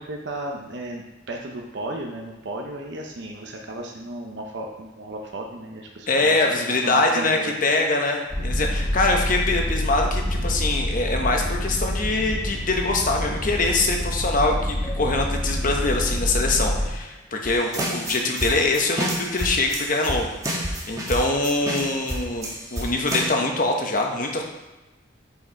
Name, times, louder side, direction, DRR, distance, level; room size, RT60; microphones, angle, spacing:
voice 1, 0.0-7.7, right 1 dB, 65° right, 1 dB, 0.8 m, -34 dB
voice 2, 6.1-24.4, left 2 dB, 45° left, 2 dB, 1.1 m, -23 dB
sound 1, 8.3-16.9, equal, 25° left, 1.9 m, -27 dB
Keyboard (musical), 14.8-17.3, left 1 dB, 5° left, 2.1 m, -46 dB
sound 2, 17.5-23.3, right 1 dB, 20° right, 1.3 m, -29 dB
7.9 x 4.8 x 4.6 m, 1.1 s
head